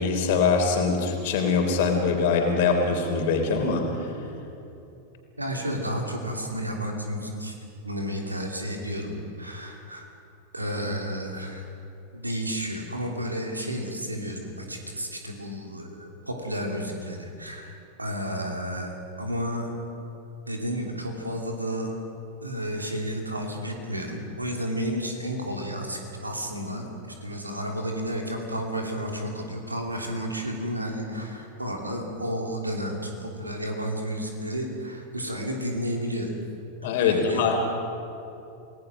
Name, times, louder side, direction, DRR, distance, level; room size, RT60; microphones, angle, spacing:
voice 1, 0.0-4.1 36.8-37.7, left 5 dB, 50° left, 3 dB, 3.6 m, -23 dB
voice 2, 5.4-7.5 7.8-10.1 10.5-11.6 12.1-19.7 20.5-21.9 22.4-26.9 27.2-36.3 37.0-37.7, equal, 85° right, 1 dB, 3.1 m, -32 dB
28.5 x 18.5 x 6.2 m, 2.8 s
figure-of-eight pair, 90°, 0 cm